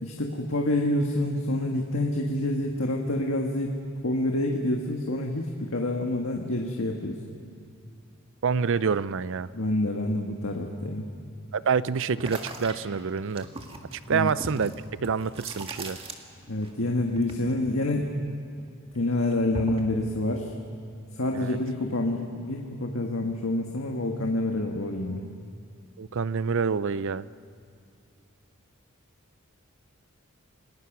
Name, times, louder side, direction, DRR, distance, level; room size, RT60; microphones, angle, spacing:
voice 1, 0.0-3.7 4.0-7.2 9.5-11.0 14.1-14.3 16.5-18.1 18.9-20.5 21.2-25.2, left 1 dB, 70° left, 1 dB, 1.7 m, -27 dB
voice 2, 8.4-9.5 11.5-13.5 13.9-14.7 15.0-16.0 21.3-21.6 26.0-27.3, right 6 dB, 60° right, 17 dB, 0.5 m, -27 dB
sound 1, 12.2-16.7 17.0-18.6 18.9-19.9, right 2 dB, 25° right, 1.7 m, -40 dB
29.0 x 20.0 x 6.1 m, 2.4 s
head